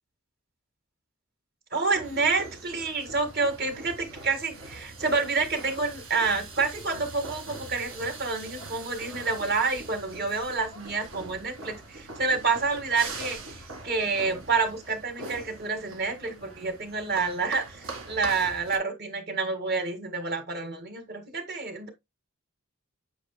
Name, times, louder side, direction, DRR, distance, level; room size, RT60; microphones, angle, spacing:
voice 1, 1.7-13.4 13.8-21.9, right 4 dB, 50° right, 1.9 m, -28 dB
sound 1, 1.9-18.8, right 3 dB, 75° right, 1.9 m, -42 dB
9.1 x 6.7 x 2.2 m
head